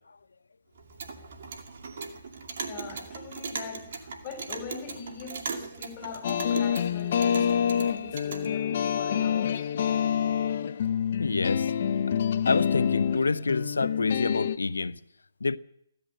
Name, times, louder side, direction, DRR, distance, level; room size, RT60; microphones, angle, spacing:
Clock, 0.8-8.5, right 4 dB, 55° right, 2.3 m, -39 dB
voice 1, 2.6-9.8, left 4 dB, 30° left, 4.4 m, -42 dB
sound 1, 6.2-14.6, left 8 dB, 50° left, 0.7 m, -27 dB
voice 2, 11.2-11.7 12.5-15.0 15.4-15.6, left 4 dB, 90° left, 0.6 m, -27 dB
16.0 x 12.5 x 6.6 m
hypercardioid pair, 150°, 0 cm